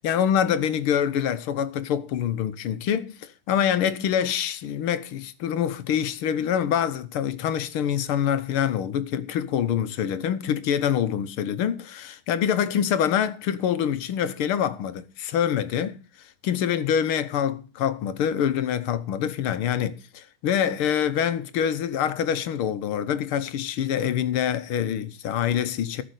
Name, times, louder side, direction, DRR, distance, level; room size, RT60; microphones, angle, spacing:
voice 1, 0.0-16.0 16.4-26.0, left 9 dB, 80° left, 1.8 m, -25 dB
14.5 x 6.1 x 8.1 m
omnidirectional pair, 2.3 m